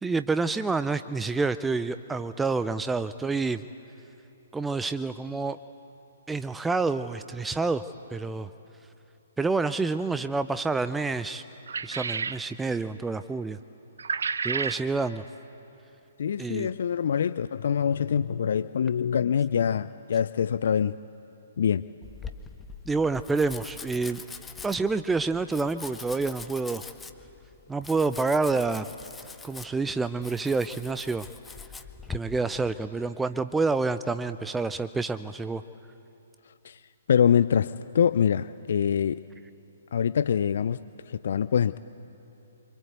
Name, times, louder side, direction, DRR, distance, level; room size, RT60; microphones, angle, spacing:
voice 1, 0.0-3.6 4.5-5.6 6.3-7.8 8.1-8.5 9.4-11.4 11.8-13.6 14.4-15.2 16.4-16.7 22.9-24.2 24.6-26.9 27.7-28.9 29.4-31.3 32.1-35.6, right 3 dB, 5° right, 11 dB, 0.6 m, -28 dB
sound 1, 11.7-12.4 14.0-14.8, right 5 dB, 65° right, 0.8 m, -30 dB
voice 2, 16.2-21.0 21.6-21.8 36.6-36.8 37.1-39.2 39.9-40.8 41.1-41.8, left 8 dB, 55° left, 15 dB, 0.5 m, -24 dB
Domestic sounds home sounds, 22.0-32.2, left 5 dB, 10° left, 1.1 m, -43 dB
26.0 x 25.5 x 8.1 m, 2.9 s
figure-of-eight pair, 125°, 0 cm